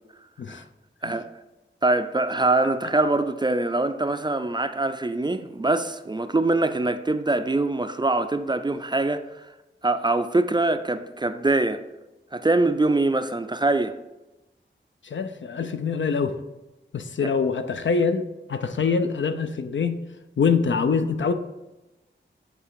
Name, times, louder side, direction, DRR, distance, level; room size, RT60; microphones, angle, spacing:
voice 1, 1.8-9.2 9.8-11.8 12.3-14.0, right 2 dB, 20° right, 0.4 m, -23 dB
voice 2, 15.0-16.4 16.9-19.9 20.4-21.3, left 5 dB, 70° left, 0.5 m, -24 dB
7.7 x 3.3 x 4.7 m
wide cardioid pair, 70°, 20 cm